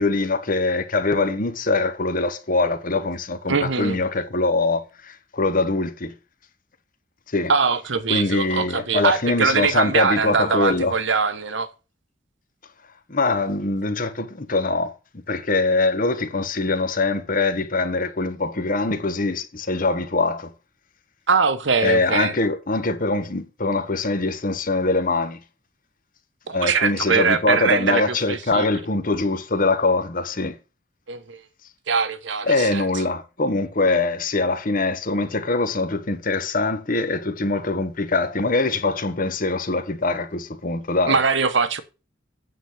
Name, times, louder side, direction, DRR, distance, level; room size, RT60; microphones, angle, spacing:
voice 1, 0.0-6.1 7.3-7.5 8.1-10.9 13.1-14.9 15.3-20.5 21.8-25.4 26.5-30.6 32.5-41.2, left 3 dB, 45° left, 1.1 m, -23 dB
voice 2, 3.5-4.0 7.5-11.7 21.3-22.3 26.5-28.7 31.1-31.4 31.9-32.8 41.1-41.8, right 5 dB, 65° right, 1.0 m, -22 dB
9.2 x 3.9 x 7.1 m
head